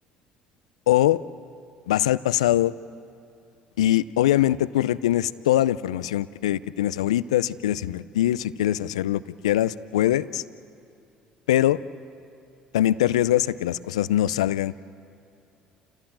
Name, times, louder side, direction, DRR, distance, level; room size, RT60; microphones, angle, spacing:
voice 1, 0.9-1.2 1.9-2.7 3.8-10.4 11.5-11.8 12.7-14.8, left 13 dB, 85° left, 17 dB, 0.5 m, -22 dB
29.0 x 16.5 x 8.9 m, 2.5 s
hypercardioid pair, 60°, 3 cm